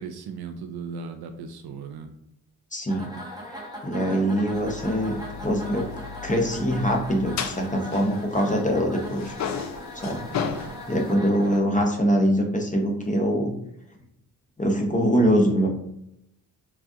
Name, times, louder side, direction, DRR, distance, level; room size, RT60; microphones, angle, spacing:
voice 1, 0.0-2.1 3.9-4.2 10.3-10.8, right 5 dB, 55° right, 6 dB, 0.5 m, -38 dB
voice 2, 2.7-3.1 3.5-5.9 6.2-9.3 9.9-10.3 10.5-13.6 14.6-15.7, equal, 15° left, 2 dB, 0.7 m, -23 dB
sound 1, 2.9-11.6, equal, 10° right, 0.8 m, -40 dB
sound 2, 4.5-8.8 9.0-11.1, left 7 dB, 40° left, 0.4 m, -35 dB
3.3 x 2.5 x 2.4 m, 0.77 s
hypercardioid pair, 40°, 48 cm